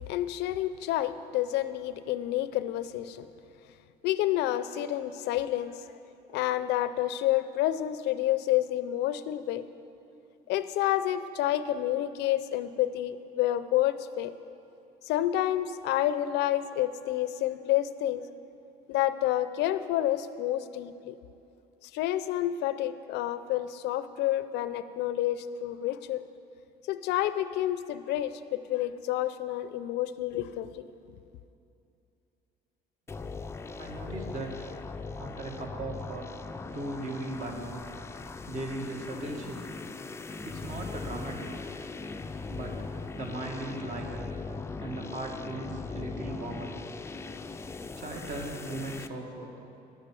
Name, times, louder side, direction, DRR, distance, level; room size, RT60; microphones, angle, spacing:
voice 1, 0.1-3.3 4.0-5.7 6.3-9.6 10.5-14.3 15.1-18.2 18.9-21.2 21.9-26.2 26.9-30.9, left 13 dB, 85° left, 13 dB, 0.5 m, -29 dB
sound 1, 33.1-49.1, left 4 dB, 15° left, 0.4 m, -40 dB
voice 2, 33.8-34.5 35.2-36.3 36.7-37.8 38.5-39.6 40.4-41.7 42.5-42.9 43.1-44.3 44.8-46.7 48.0-49.5, right 2 dB, 50° right, 1 dB, 1.7 m, -38 dB
11.0 x 6.5 x 7.5 m, 2.7 s
cardioid pair, 110°, 17 cm